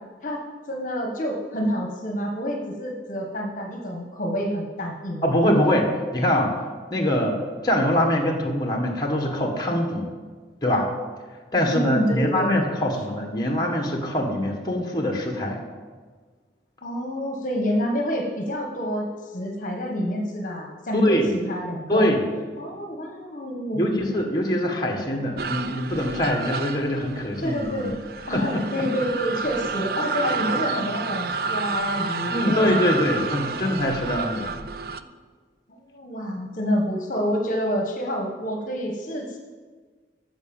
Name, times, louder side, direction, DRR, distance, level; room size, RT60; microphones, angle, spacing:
voice 1, 0.2-5.3 11.7-12.6 16.8-22.1 22.6-23.8 27.4-28.0 28.3-32.9 34.9-35.1 35.7-39.4, equal, 45° left, 2 dB, 1.4 m, -28 dB
voice 2, 5.2-6.6 6.9-10.1 10.6-10.9 11.5-15.6 20.9-21.3 21.9-22.2 23.7-27.9 28.3-28.8 32.3-34.5, left 1 dB, 25° left, 1 dB, 1.6 m, -23 dB
sound 1, 25.4-35.0, right 4 dB, 55° right, 0.5 m, -30 dB
14.0 x 6.1 x 7.2 m, 1.5 s
head